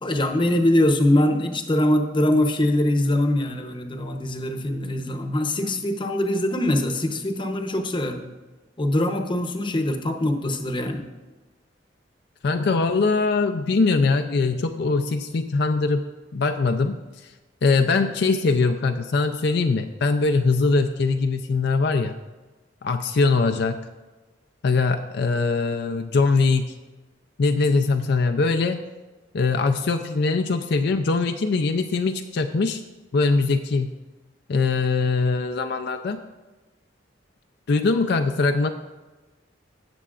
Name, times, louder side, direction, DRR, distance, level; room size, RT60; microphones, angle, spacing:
voice 1, 0.0-8.3 8.8-11.0, left 1 dB, 25° left, 5 dB, 0.8 m, -23 dB
voice 2, 12.4-16.1 16.3-17.3 17.6-22.1 22.8-23.8 24.6-26.7 27.4-28.8 29.3-32.8 33.1-33.9 34.5-36.2 37.7-38.7, left 3 dB, 65° left, 6 dB, 0.5 m, -22 dB
17.0 x 6.9 x 2.4 m, 1.2 s
head